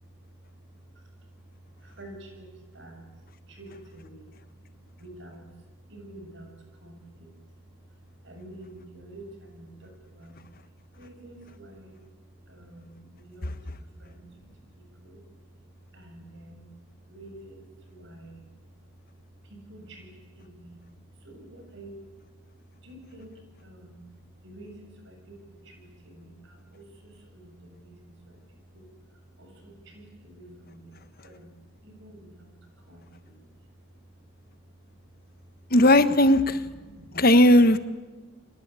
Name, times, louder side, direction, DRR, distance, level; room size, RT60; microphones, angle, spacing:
voice 1, 1.8-2.5 2.7-3.0 3.5-4.3 5.0-5.5 5.9-6.5 6.8-7.3 8.2-10.4 11.0-12.0 12.5-13.5 14.0-15.2 15.9-16.7 17.1-18.4 19.5-20.1 20.4-20.8 21.2-22.0 22.8-23.3 23.6-24.0 24.4-28.4 28.7-28.9 29.4-31.5 31.8-32.5 32.9-33.4 36.4-37.3 37.7-37.8, right 1 dB, 60° right, 3 dB, 7.3 m, -48 dB
voice 2, 35.7-36.6 37.1-37.8, left 1 dB, 45° left, 12 dB, 1.3 m, -17 dB
30.0 x 24.0 x 8.4 m, 1.3 s
head